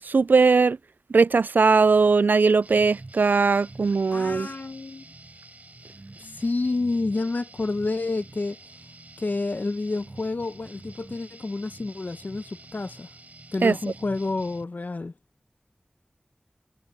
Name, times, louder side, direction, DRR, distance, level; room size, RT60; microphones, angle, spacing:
voice 1, 0.0-0.8 1.1-4.5 13.6-13.8, right 4 dB, 90° right, 0.3 m, -19 dB
sound 1, 2.6-14.6, right 2 dB, 55° right, 5.5 m, -47 dB
voice 2, 4.1-5.1 6.2-8.6 9.2-13.1 13.5-15.1, left 3 dB, 65° left, 0.9 m, -29 dB
wide cardioid pair, 65°, 3 cm